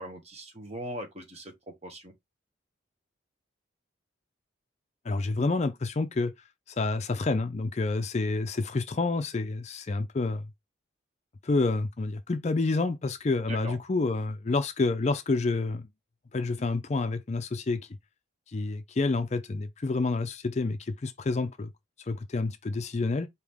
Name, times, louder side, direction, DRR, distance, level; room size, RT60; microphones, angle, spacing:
voice 1, 0.0-2.1 13.5-13.8, equal, 35° right, 1.2 m, -40 dB
voice 2, 5.1-6.3 6.7-10.4 11.4-15.8 16.3-17.9 18.5-21.7 22.1-23.3, left 3 dB, 35° left, 0.4 m, -28 dB
4.9 x 2.9 x 3.5 m
head